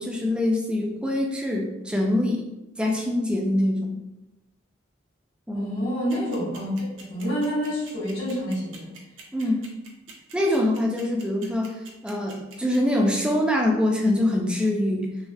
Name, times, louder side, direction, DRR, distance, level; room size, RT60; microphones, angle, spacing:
voice 1, 0.0-2.4 2.8-4.0 5.5-5.7 9.3-9.7 10.3-11.8 12.0-15.1, left 1 dB, 5° right, 0 dB, 0.4 m, -24 dB
voice 2, 5.5-8.9, equal, 90° left, -7 dB, 1.3 m, -28 dB
sound 1, 6.1-12.8, right 6 dB, 70° right, 0.6 m, -45 dB
3.2 x 2.1 x 2.6 m, 0.95 s
head